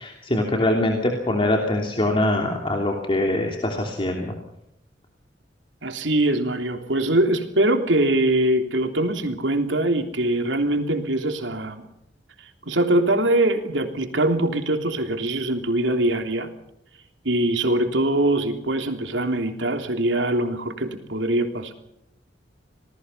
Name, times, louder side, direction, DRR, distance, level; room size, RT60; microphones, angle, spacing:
voice 1, 0.0-4.3, left 1 dB, 30° left, 2 dB, 3.0 m, -23 dB
voice 2, 5.8-11.9 12.7-16.5 17.2-21.7, right 1 dB, 85° right, 5 dB, 3.3 m, -22 dB
27.5 x 19.5 x 5.6 m, 0.79 s
head